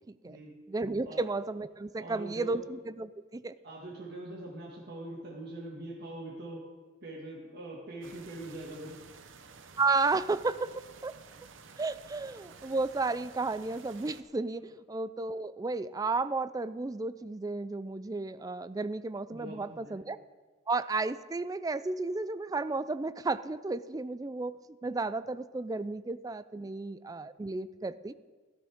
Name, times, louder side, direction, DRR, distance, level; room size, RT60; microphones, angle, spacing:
voice 1, 0.7-3.5 9.8-11.2 11.8-20.2 20.7-24.6 24.8-28.1, right 3 dB, 20° right, 14 dB, 0.3 m, -33 dB
voice 2, 2.0-2.6 3.6-6.6 7.0-9.0 19.3-20.0, right 1 dB, 55° right, -3 dB, 1.9 m, -43 dB
sound 1, 8.0-14.2, right 5 dB, 75° right, 0.9 m, -52 dB
14.0 x 13.0 x 3.6 m, 1.3 s
head